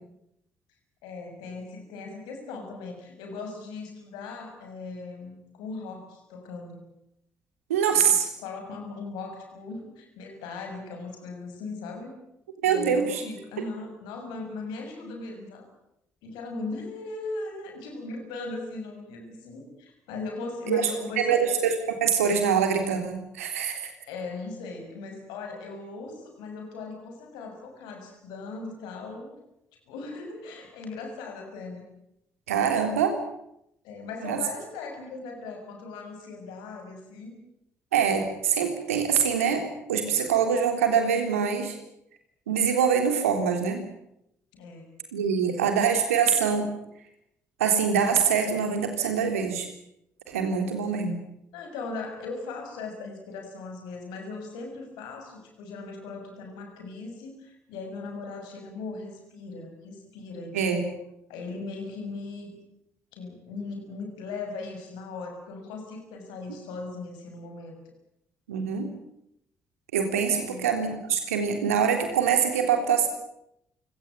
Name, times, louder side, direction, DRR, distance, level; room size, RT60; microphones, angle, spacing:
voice 1, 1.0-6.9 7.9-12.2 12.6-15.7 16.2-21.5 24.1-29.4 29.9-31.9 33.8-37.4 44.5-44.9 45.4-45.7 50.8-50.9 51.5-61.0 61.3-62.5 63.1-67.8 70.1-70.7, left 3 dB, 75° left, 4 dB, 6.9 m, -38 dB
voice 2, 7.7-8.3 12.6-13.2 20.7-20.9 21.2-23.9 32.5-33.2 34.2-34.4 37.9-41.8 42.5-43.8 45.1-46.7 47.6-49.7 50.3-51.2 60.5-60.8 68.5-68.9 69.9-73.1, right 7 dB, 90° right, 6 dB, 3.5 m, -24 dB
28.5 x 18.0 x 9.1 m, 0.80 s
hypercardioid pair, 45°, 7 cm